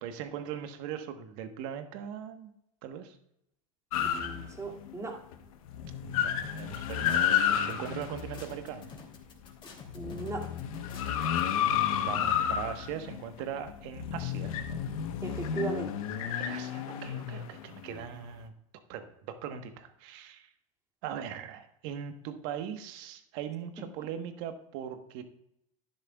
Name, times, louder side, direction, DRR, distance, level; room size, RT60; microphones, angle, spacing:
voice 1, 0.0-2.5 2.8-3.2 4.0-4.1 6.0-9.0 11.3-14.5 16.4-18.5 18.9-20.5 21.0-25.2, right 9 dB, 60° right, 7 dB, 1.3 m, -40 dB
sound 1, 3.9-4.9 5.3-5.4 5.7-9.2 9.7-18.2, left 9 dB, 75° left, 1.1 m, -31 dB
voice 2, 4.0-5.1 9.9-10.4 15.2-15.9, right 4 dB, 15° right, -1 dB, 2.4 m, -37 dB
sound 2, 6.4-11.4, left 4 dB, 25° left, 2.7 m, -49 dB
12.0 x 10.0 x 2.3 m, 0.79 s
supercardioid pair, 110°, 18 cm